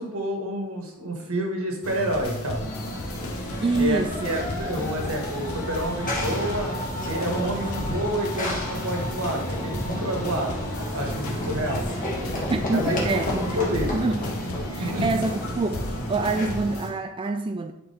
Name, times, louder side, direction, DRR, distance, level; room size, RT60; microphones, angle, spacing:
voice 1, 0.0-2.6 3.8-6.7 7.1-10.6 10.9-11.8 12.7-14.0 14.8-15.2, equal, 80° right, 1.7 m, -29 dB
sound 1, 1.8-16.9, left 1 dB, 85° left, 1.1 m, -35 dB
Run / Train, 2.5-17.0, left 1 dB, 40° left, 1.7 m, -31 dB
voice 2, 3.6-4.3 12.5-14.2 14.7-17.7, right 3 dB, 25° right, 0.3 m, -26 dB
10.0 x 4.4 x 3.5 m
head